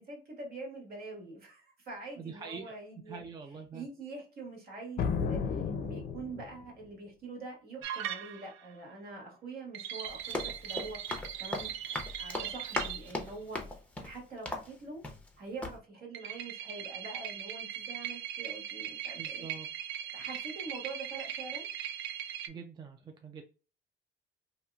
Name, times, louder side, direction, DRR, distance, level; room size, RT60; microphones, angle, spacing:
voice 1, 0.0-3.2 3.7-13.6 14.0-15.0 15.4-19.5 20.1-21.6, right 3 dB, 50° right, -1 dB, 1.6 m, -45 dB
voice 2, 2.2-2.8 3.1-3.9 19.2-19.7 22.5-23.4, right 5 dB, 20° right, 4 dB, 0.3 m, -44 dB
sound 1, 5.0-6.7, left 6 dB, 50° left, 0.5 m, -33 dB
sound 2, 7.8-8.7 9.7-13.1 16.1-22.5, right 10 dB, 80° right, 0.5 m, -39 dB
Run, 10.0-15.3 15.6-15.8, left 2 dB, 5° left, 0.7 m, -39 dB
2.9 x 2.8 x 2.3 m, 0.36 s
cardioid pair, 120°, 20 cm